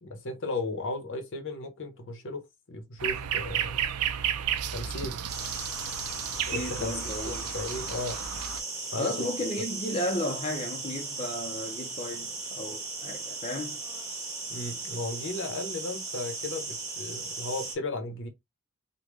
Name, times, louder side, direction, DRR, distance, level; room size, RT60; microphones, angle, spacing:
voice 1, 0.0-2.4 2.7-3.8 4.7-5.2 6.5-8.2 8.9-9.1 14.5-18.3, left 2 dB, 55° left, 0.8 m, -35 dB
sound 1, 3.0-8.6, right 9 dB, 80° right, 0.4 m, -32 dB
sound 2, 5.3-17.7, right 3 dB, 15° right, 1.3 m, -37 dB
voice 2, 6.5-7.5 9.0-13.8, left 1 dB, 25° left, 0.6 m, -34 dB
3.5 x 2.2 x 3.1 m
head